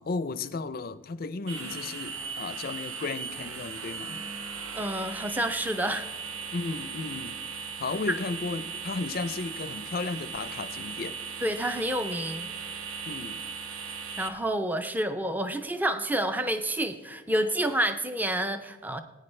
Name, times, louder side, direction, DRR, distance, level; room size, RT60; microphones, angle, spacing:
voice 1, 0.0-4.2 6.5-7.4 7.8-11.2 13.1-13.4, left 3 dB, 45° left, 0.5 m, -34 dB
sound 1, 1.5-14.3, right 5 dB, 85° right, 1.1 m, -38 dB
voice 2, 4.7-6.1 8.1-8.2 11.4-12.5 14.2-19.0, right 1 dB, 10° right, 0.4 m, -29 dB
20.5 x 9.4 x 3.2 m
head